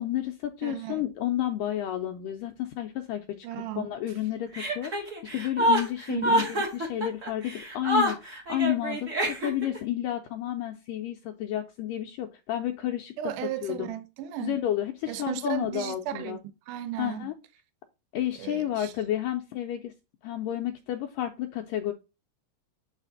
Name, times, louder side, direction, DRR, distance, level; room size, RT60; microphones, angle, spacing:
voice 1, 0.0-3.5 3.8-13.1 13.6-13.9 14.4-16.4 17.0-17.3 18.1-19.9 20.2-21.9, left 12 dB, 90° left, 1.9 m, -31 dB
voice 2, 0.6-1.0 3.4-3.9 6.1-6.5 13.2-14.6 15.1-17.3 18.4-18.9, right 12 dB, 85° right, 1.8 m, -35 dB
Chuckle chortle, 4.5-9.8, equal, 40° right, 1.1 m, -27 dB
8.9 x 4.1 x 3.9 m
omnidirectional pair, 4.6 m